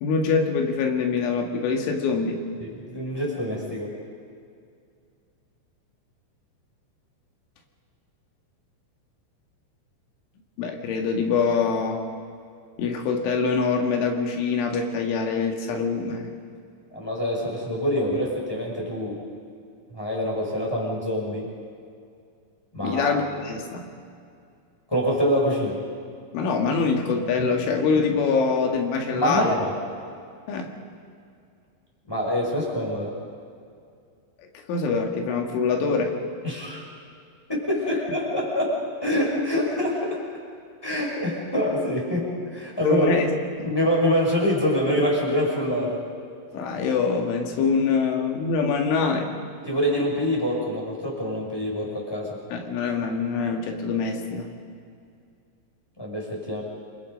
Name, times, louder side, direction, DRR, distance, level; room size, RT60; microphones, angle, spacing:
voice 1, 0.0-2.4 10.6-12.0 12.8-16.3 22.8-23.9 26.3-29.6 30.5-30.7 34.7-36.2 42.8-43.3 43.6-43.7 46.5-49.4 52.5-54.5, left 5 dB, 85° left, 3 dB, 4.5 m, -24 dB
voice 2, 2.6-3.9 16.9-19.2 19.9-21.5 22.7-23.2 24.9-25.8 29.1-29.7 32.1-33.2 36.4-36.8 37.5-40.2 40.8-43.1 43.6-46.0 49.6-52.4 56.0-56.6, equal, 5° left, -3 dB, 5.1 m, -25 dB
28.5 x 23.5 x 5.4 m, 2.3 s
omnidirectional pair, 5.4 m